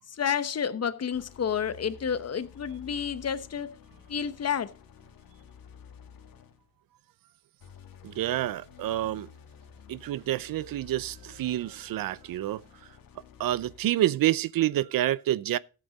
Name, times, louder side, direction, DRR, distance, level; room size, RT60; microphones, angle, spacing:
voice 1, 0.2-3.7 4.1-4.7, left 7 dB, 45° left, 0.9 m, -30 dB
sound 1, 1.1-6.7 7.6-14.0, left 7 dB, 75° left, 1.6 m, -52 dB
voice 2, 8.0-9.3 9.9-12.6 13.4-15.6, right 13 dB, 75° right, 0.6 m, -28 dB
13.0 x 8.3 x 3.9 m
cardioid pair, 100°, 35 cm